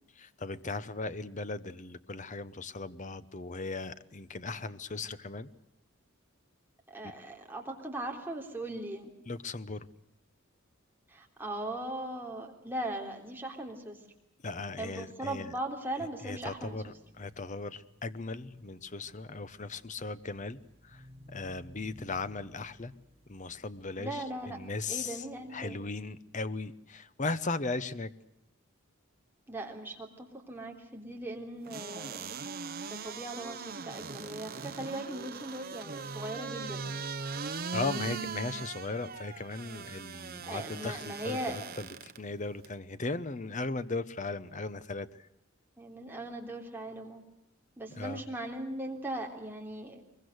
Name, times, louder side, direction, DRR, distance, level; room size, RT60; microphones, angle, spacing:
voice 1, 0.2-5.5 9.3-9.9 14.4-15.5 16.2-21.0 21.3-22.9 23.3-25.2 25.5-28.1 37.7-41.9 42.2-45.1 48.0-48.2, left 3 dB, 35° left, 14 dB, 0.9 m, -37 dB
voice 2, 6.9-9.1 11.1-14.0 14.8-16.8 24.0-24.6 24.9-25.8 29.5-32.3 32.9-36.9 40.4-41.6 45.8-47.2 47.8-50.0, right 1 dB, 10° right, 1 dB, 3.4 m, -39 dB
sound 1, 16.4-26.0, equal, 25° right, 3.5 m, -59 dB
sound 2, 31.7-42.2 42.6-42.7, right 5 dB, 45° right, 0.9 m, -40 dB
23.5 x 22.5 x 8.0 m, 0.80 s
head